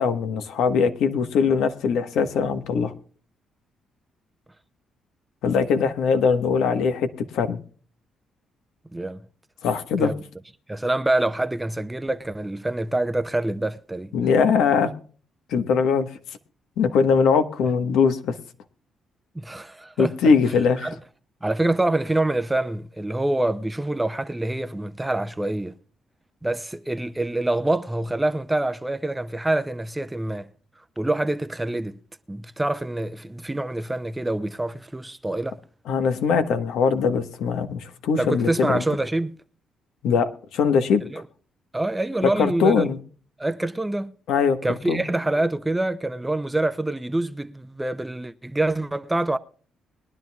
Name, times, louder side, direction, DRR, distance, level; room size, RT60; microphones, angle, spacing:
voice 1, 0.0-2.9 5.4-7.6 9.6-10.1 14.1-14.9 15.5-16.1 16.8-18.3 20.0-20.9 35.9-38.8 40.0-41.0 42.4-43.0 44.3-44.6 44.9-45.0, left 5 dB, 80° left, 1.3 m, -21 dB
voice 2, 10.7-14.1 19.3-20.1 20.8-21.0 21.4-25.7 26.4-30.5 31.0-32.0 32.3-35.6 38.2-39.4 41.1-41.2 41.7-42.9 43.4-44.1 44.6-49.4, right 2 dB, 10° right, 0.7 m, -26 dB
22.0 x 11.0 x 2.4 m
cardioid pair, 90°, 0 cm